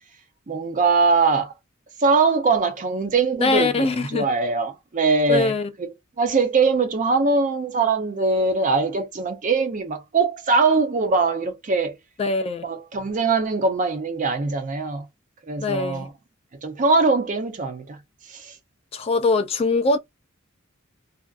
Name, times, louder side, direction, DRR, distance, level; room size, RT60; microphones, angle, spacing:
voice 1, 0.5-1.5 2.0-5.5 5.8-12.0 12.6-15.1 15.5-16.1 16.6-18.0 18.3-18.6, right 4 dB, 40° right, 0.5 m, -22 dB
voice 2, 3.4-4.2 5.3-5.7 12.2-12.6 15.6-16.1 18.9-20.0, left 3 dB, 30° left, 0.3 m, -22 dB
2.5 x 2.4 x 2.3 m
head